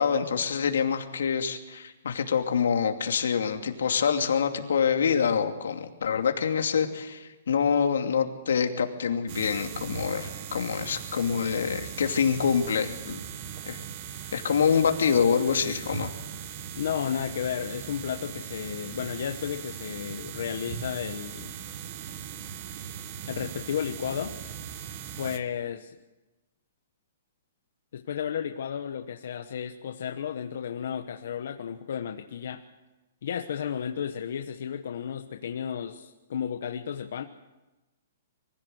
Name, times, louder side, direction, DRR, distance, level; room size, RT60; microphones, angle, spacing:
voice 1, 0.0-13.2 13.7-13.8 14.3-16.1, left 6 dB, 80° left, 5 dB, 2.6 m, -26 dB
sound 1, 9.3-25.4, right 8 dB, 30° right, 1.2 m, -39 dB
voice 2, 16.7-21.5 23.3-24.4 25.2-26.0 27.9-32.6 33.2-37.2, left 8 dB, 55° left, 6 dB, 1.1 m, -33 dB
24.5 x 16.0 x 7.9 m, 1.1 s
hypercardioid pair, 175°, 0 cm